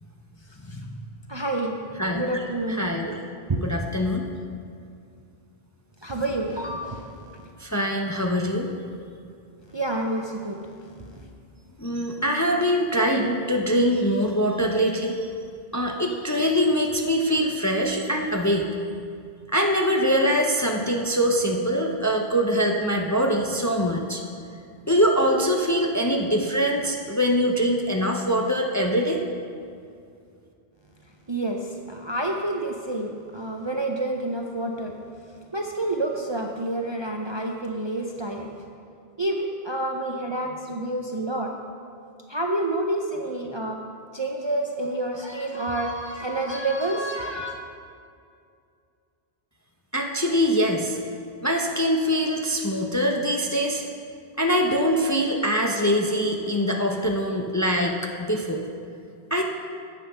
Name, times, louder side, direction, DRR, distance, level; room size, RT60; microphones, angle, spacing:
voice 1, 1.3-1.8 2.1-2.8 3.1-3.2 3.5-3.6 6.0-7.5 9.7-10.7 11.0-11.3 31.3-35.0 35.5-38.5 39.2-41.5 42.3-43.8 44.1-47.6, right 1 dB, 30° right, 2 dB, 0.6 m, -28 dB
voice 2, 2.7-3.1 3.6-4.2 7.6-8.7 11.8-15.3 15.7-18.7 19.5-24.2 24.9-29.2 49.9-51.0 51.4-53.8 54.4-58.6 59.3-59.4, equal, 20° left, 1 dB, 0.6 m, -23 dB
10.0 x 7.8 x 5.5 m, 2.4 s
omnidirectional pair, 1.1 m